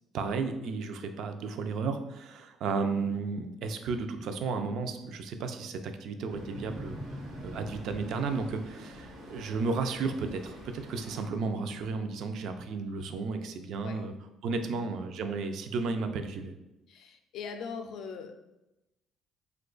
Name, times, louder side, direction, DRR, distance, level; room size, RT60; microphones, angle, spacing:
voice 1, 0.1-7.0 7.4-14.1 14.4-16.5, right 4 dB, 70° right, 7 dB, 0.3 m, -33 dB
sound 1, 6.3-9.5, equal, 10° left, 0.4 m, -45 dB
Traffic noise roadway noise, 6.3-11.3, equal, 85° right, 0.9 m, -47 dB
voice 2, 16.9-18.3, left 5 dB, 70° left, 6 dB, 0.4 m, -41 dB
3.0 x 2.2 x 3.8 m, 0.96 s
cardioid pair, 95°, 0 cm